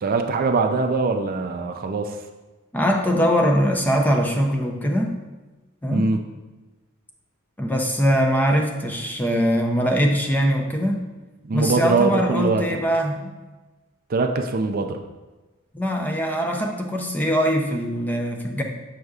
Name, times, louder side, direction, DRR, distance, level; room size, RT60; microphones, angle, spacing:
voice 1, 0.0-2.2 5.9-6.2 11.4-12.6 14.1-15.0, right 4 dB, 45° right, 5 dB, 0.4 m, -22 dB
voice 2, 2.7-5.1 5.8-6.1 7.6-11.1 11.5-13.3 15.7-18.6, equal, 10° left, 2 dB, 0.5 m, -22 dB
6.4 x 6.4 x 2.4 m, 1.2 s
head